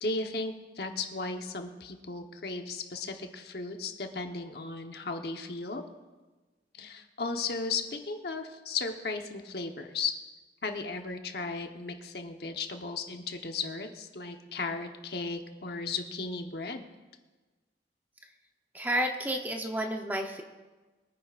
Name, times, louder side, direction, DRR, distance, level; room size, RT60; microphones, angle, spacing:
voice 1, 0.0-5.8 6.7-10.1 10.6-16.8, left 4 dB, 60° left, 4 dB, 1.1 m, -35 dB
voice 2, 18.7-20.4, right 1 dB, 10° right, 3 dB, 0.8 m, -31 dB
23.0 x 9.8 x 2.5 m, 1.2 s
head